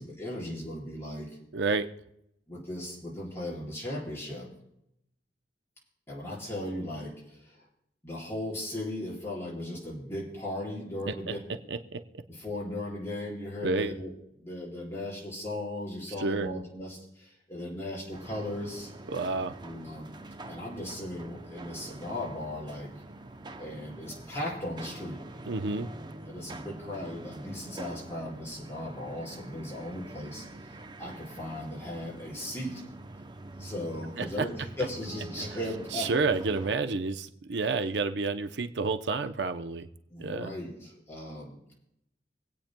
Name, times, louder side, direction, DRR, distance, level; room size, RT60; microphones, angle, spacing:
voice 1, 0.0-1.4 2.5-4.5 6.1-7.6 8.0-11.4 12.3-14.1 14.4-18.9 19.6-20.1 20.5-22.9 23.6-25.2 26.3-30.5 31.0-32.8 33.5-34.5 34.8-36.1 37.5-37.6 40.1-41.8, left 1 dB, 15° left, -6 dB, 4.8 m, -37 dB
voice 2, 1.5-1.9 11.1-11.3 11.7-12.0 13.6-13.9 16.2-16.5 19.1-19.6 25.5-25.9 34.2-34.5 35.9-39.9 40.2-40.5, right 4 dB, 80° right, 9 dB, 0.6 m, -30 dB
sound 1, 18.1-36.8, right 2 dB, 25° right, 0.6 m, -45 dB
26.0 x 8.8 x 2.2 m, 0.79 s
head